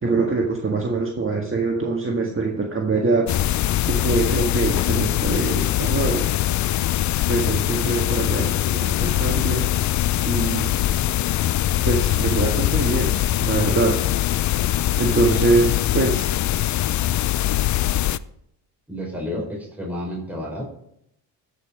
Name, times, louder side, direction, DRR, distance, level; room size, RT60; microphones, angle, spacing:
voice 1, 0.0-3.3 3.8-6.2 7.3-9.7 10.2-10.7 11.8-13.2 13.4-14.0 15.0-16.4, right 3 dB, 25° right, 0 dB, 1.7 m, -23 dB
sound 1, 3.3-18.2, left 13 dB, 40° left, 0.4 m, -22 dB
voice 2, 18.9-20.6, left 1 dB, 5° right, -2 dB, 4.6 m, -30 dB
14.0 x 5.7 x 5.0 m, 0.76 s
hypercardioid pair, 55°, 48 cm